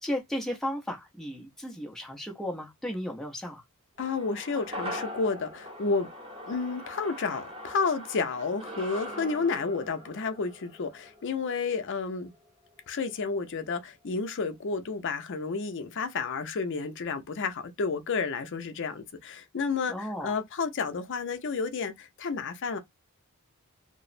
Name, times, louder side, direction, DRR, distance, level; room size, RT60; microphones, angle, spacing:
voice 1, 0.0-3.6 19.9-20.3, equal, ahead, 0.6 m, -34 dB
voice 2, 4.0-6.1 6.5-12.3 12.9-22.8, left 4 dB, 55° left, 0.5 m, -31 dB
sound 1, 4.0-12.5 12.8-12.9, equal, 25° right, 0.9 m, -42 dB
3.0 x 2.0 x 2.4 m
head